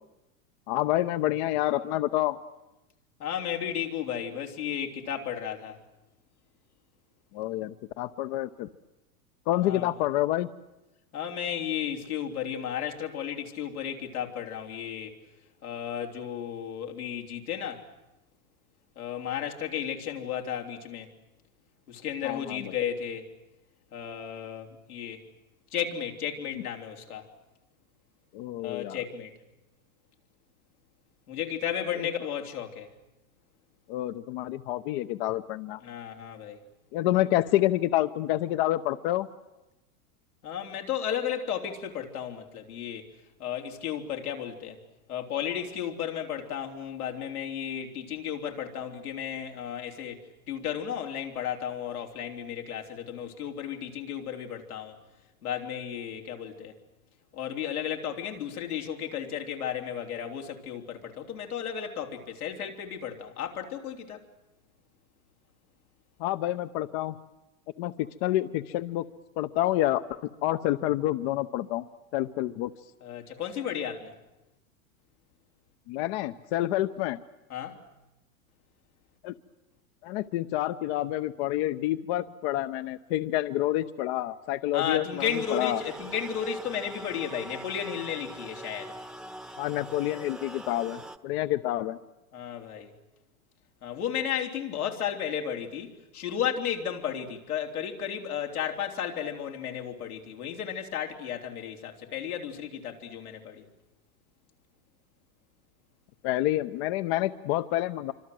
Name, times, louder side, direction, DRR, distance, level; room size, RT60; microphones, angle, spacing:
voice 1, 0.7-2.4 7.3-8.7 9.5-10.5 22.2-22.7 28.3-29.0 32.0-32.1 33.9-35.8 36.9-39.3 66.2-67.1 67.8-69.0 69.4-70.0 70.4-71.8 72.1-72.7 75.9-77.2 79.2-79.3 80.0-85.8 89.6-92.0 106.2-108.1, left 14 dB, 50° left, 0.9 m, -28 dB
voice 2, 3.2-5.8 9.6-9.9 11.1-15.2 15.6-17.9 19.0-21.1 21.9-23.3 23.9-25.2 25.7-27.3 28.6-29.3 31.3-32.9 35.8-36.6 40.4-43.1 43.4-44.8 45.1-55.0 55.4-56.8 57.3-64.2 73.0-74.1 77.5-77.8 84.7-89.0 92.3-92.9 93.8-103.6, left 9 dB, 90° left, 3.6 m, -34 dB
sound 1, 85.2-91.2, right 1 dB, ahead, 1.0 m, -43 dB
26.5 x 25.0 x 7.8 m
hypercardioid pair, 115°, 43 cm